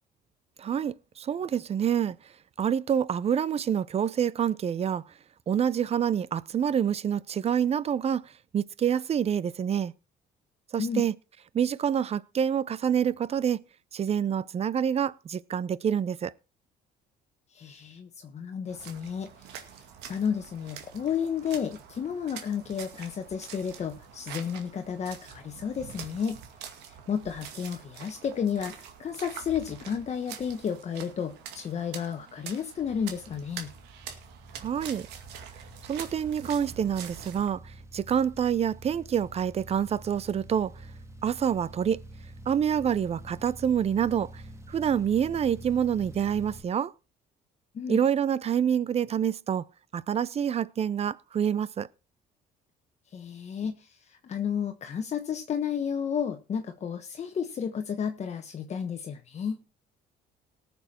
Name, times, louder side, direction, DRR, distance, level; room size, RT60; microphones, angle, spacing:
voice 1, 0.6-2.2 2.6-5.0 5.5-8.2 8.5-9.9 10.7-11.1 11.5-13.6 13.9-16.3 34.6-35.1 35.9-37.6 37.9-40.7 41.2-42.0 42.5-44.4 44.7-46.9 47.9-49.6 49.9-51.9, right 8 dB, 40° right, 0.6 m, -27 dB
voice 2, 17.5-19.5 20.1-26.4 26.8-33.7 47.7-48.0 53.1-59.6, left 7 dB, 40° left, 1.2 m, -32 dB
sound 1, 18.7-37.5, right 8 dB, 90° right, 2.2 m, -45 dB
sound 2, 32.8-46.6, right 1 dB, 15° right, 1.8 m, -47 dB
18.5 x 7.0 x 4.3 m
cardioid pair, 110°, 17 cm